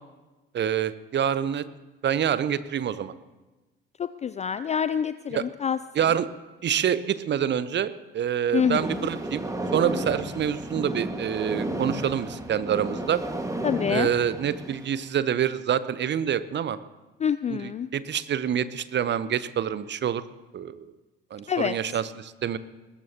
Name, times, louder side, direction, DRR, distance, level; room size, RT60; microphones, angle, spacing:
voice 1, 0.5-1.6 2.0-3.1 5.3-5.4 6.0-6.3 6.6-9.4 9.7-13.2 13.9-16.8 17.5-20.2 20.5-20.9 21.3-22.6, right 9 dB, 35° right, 15 dB, 0.9 m, -26 dB
voice 2, 4.0-5.8 8.5-9.1 13.6-14.1 17.2-17.9 21.5-22.0, left 7 dB, 25° left, 13 dB, 0.4 m, -27 dB
sound 1, 8.6-15.0, right 1 dB, 10° right, 1.9 m, -33 dB
21.0 x 20.0 x 3.0 m, 1.2 s
figure-of-eight pair, 55°, 30 cm